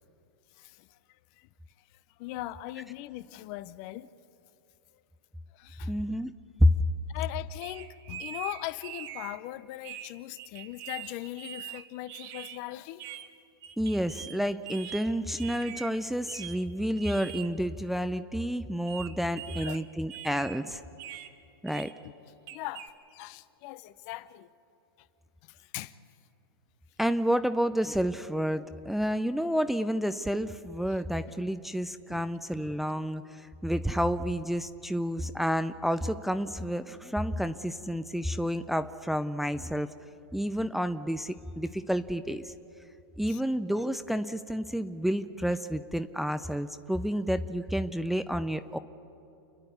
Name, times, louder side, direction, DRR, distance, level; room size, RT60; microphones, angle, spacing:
voice 1, 0.6-0.9 1.4-1.5 2.2-4.1 5.5-5.9 7.1-13.0 19.5-19.8 22.5-22.9 23.1-24.5 25.4-25.9 32.1-32.3 43.3-43.4, left 16 dB, 45° left, 15 dB, 0.7 m, -40 dB
voice 2, 5.9-6.3 6.6-6.7 13.8-20.8 21.6-21.9 27.0-39.9 40.3-42.5 43.2-48.8, equal, ahead, 10 dB, 0.5 m, -30 dB
sound 1, 7.6-9.4 9.8-12.6 13.0-13.3 13.6-14.4 14.6-15.9 16.3-16.6 17.0-17.5 18.9-19.8 20.1-20.6 21.0-21.3 21.7-21.9 22.5-22.9, right 11 dB, 40° right, 1.4 m, -43 dB
29.5 x 10.5 x 9.4 m, 2.8 s
hypercardioid pair, 115°, 13 cm